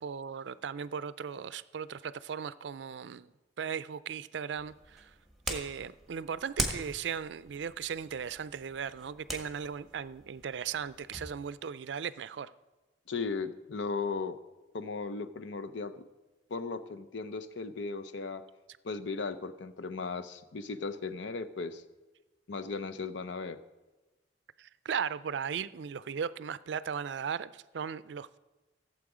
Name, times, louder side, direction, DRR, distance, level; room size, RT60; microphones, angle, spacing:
voice 1, 0.0-5.1 5.5-12.5 24.6-28.4, right 7 dB, 75° right, 0.4 m, -37 dB
sound 1, 4.6-11.3, right 1 dB, ahead, 1.5 m, -41 dB
voice 2, 13.1-14.4 14.7-16.1 16.5-18.4 18.8-21.8 22.5-23.6, left 4 dB, 85° left, 0.6 m, -36 dB
15.5 x 7.4 x 4.9 m
head